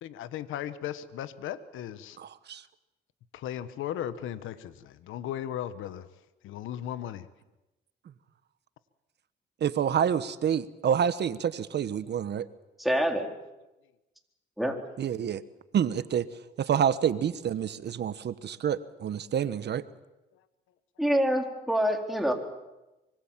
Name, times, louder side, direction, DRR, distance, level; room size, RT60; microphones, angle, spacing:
voice 1, 0.0-2.2 3.3-6.1 6.4-7.3, left 11 dB, 85° left, 13 dB, 1.3 m, -36 dB
voice 2, 2.2-2.6 9.6-12.4 15.0-15.4 15.7-16.3 16.6-19.8, right 8 dB, 60° right, 14 dB, 1.3 m, -28 dB
voice 3, 12.8-13.3 14.6-14.8 21.0-22.3, equal, ahead, 2 dB, 4.3 m, -26 dB
25.5 x 24.0 x 7.5 m, 1.0 s
cardioid pair, 90°, 20 cm